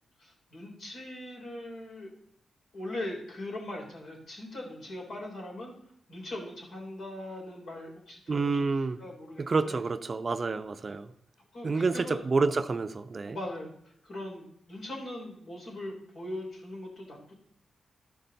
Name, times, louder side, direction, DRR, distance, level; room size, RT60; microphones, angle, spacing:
voice 1, 0.2-2.1 2.7-5.7 6.1-8.7 9.0-9.8 11.5-12.2 13.3-13.7 14.0-17.3, left 1 dB, 75° left, -2 dB, 3.6 m, -40 dB
voice 2, 8.3-9.0 9.4-11.1 11.6-13.4, right 4 dB, 45° right, 11 dB, 0.5 m, -28 dB
13.0 x 5.6 x 4.0 m, 0.68 s
cardioid pair, 60°, 0 cm